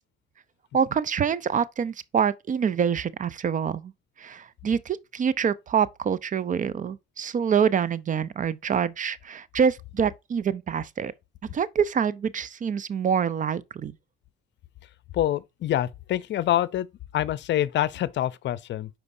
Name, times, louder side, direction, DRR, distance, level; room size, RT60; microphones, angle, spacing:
voice 1, 0.7-3.9 4.2-11.1 11.5-13.9, right 7 dB, 40° right, 0.6 m, -26 dB
voice 2, 15.1-16.9 17.1-18.9, left 12 dB, 60° left, 0.6 m, -26 dB
9.5 x 4.4 x 2.6 m
cardioid pair, 90°, 21 cm